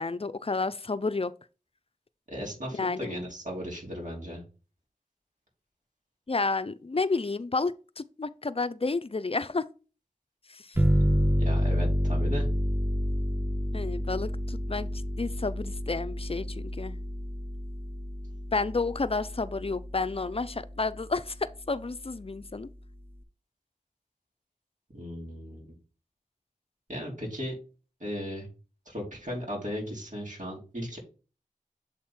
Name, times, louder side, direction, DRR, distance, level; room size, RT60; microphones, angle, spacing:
voice 1, 0.0-1.3 2.7-3.1 6.3-9.6 10.5-10.8 13.7-17.0 18.5-22.7, left 3 dB, 40° left, 0.5 m, -31 dB
voice 2, 2.3-4.4 11.4-12.5 24.9-25.7 26.9-27.5 28.0-28.5 28.8-31.0, equal, 60° right, 3.2 m, -36 dB
sound 1, 10.8-20.0, equal, 15° right, 0.8 m, -29 dB
7.2 x 3.6 x 4.3 m
wide cardioid pair, 40°, 15 cm